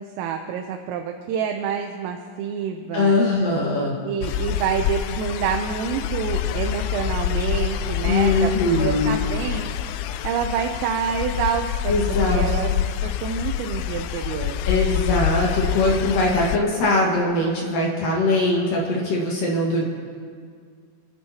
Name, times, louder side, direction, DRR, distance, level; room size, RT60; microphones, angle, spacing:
voice 1, 0.0-3.1 4.0-8.5 8.8-9.7 10.2-12.7 13.0-14.6, right 7 dB, 85° right, 4 dB, 3.3 m, -27 dB
voice 2, 2.9-3.9 8.1-9.2 11.9-12.4 14.6-19.9, left 2 dB, 60° left, -3 dB, 2.5 m, -21 dB
sound 1, 4.2-16.6, left 10 dB, 85° left, 2.9 m, -26 dB
29.0 x 12.5 x 2.9 m, 2.1 s
omnidirectional pair, 5.8 m